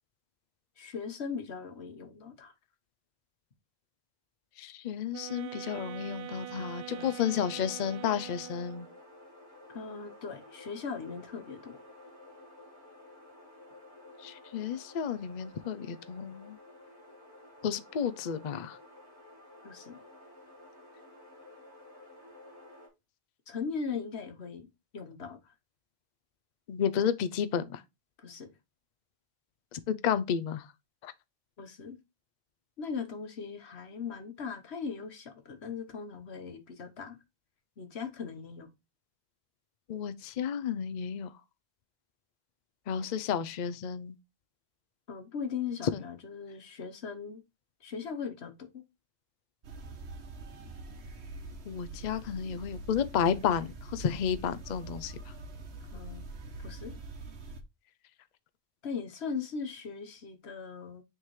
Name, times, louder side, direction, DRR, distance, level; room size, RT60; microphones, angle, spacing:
voice 1, 0.8-2.5 6.9-7.4 9.7-11.8 19.6-20.0 23.5-24.7 24.9-25.5 27.0-27.1 28.2-28.5 31.6-32.0 32.8-37.2 37.8-38.7 45.1-47.4 47.8-48.8 55.9-56.2 56.6-56.9 58.8-61.0, left 5 dB, 90° left, 1.4 m, -39 dB
voice 2, 4.6-8.9 14.2-16.6 17.6-18.8 26.7-27.8 29.7-30.7 31.0-31.1 39.9-41.3 42.9-44.1 51.7-55.1, left 8 dB, 55° left, 0.6 m, -32 dB
sound 1, 5.1-9.0, right 12 dB, 65° right, 1.0 m, -43 dB
sound 2, 6.9-22.9, left 2 dB, 20° left, 2.9 m, -53 dB
sound 3, 49.6-57.6, right 2 dB, 85° right, 1.2 m, -44 dB
9.0 x 3.7 x 3.1 m
omnidirectional pair, 1.1 m